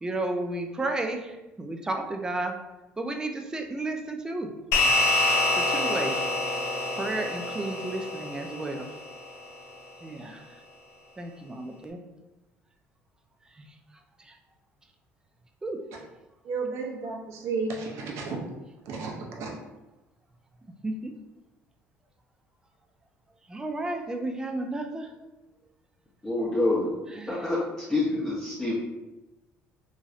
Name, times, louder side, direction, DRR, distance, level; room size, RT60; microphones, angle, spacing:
voice 1, 0.0-1.2 1.6-2.5 3.0-4.5 5.6-6.1 7.0-8.9 10.0-10.4 11.2-12.0 15.6-15.8 20.8-21.1 23.5-25.1 27.2-27.3, right 2 dB, 15° right, 4 dB, 0.4 m, -32 dB
sound 1, 4.7-9.4, left 2 dB, 70° left, 0.5 m, -26 dB
voice 2, 16.4-18.4 18.9-19.5, right 4 dB, 75° right, 0 dB, 0.7 m, -32 dB
voice 3, 26.2-26.9 27.3-27.6 27.9-28.7, left 2 dB, 15° left, -7 dB, 0.7 m, -26 dB
3.0 x 2.7 x 2.4 m, 1.0 s
cardioid pair, 110°, 5 cm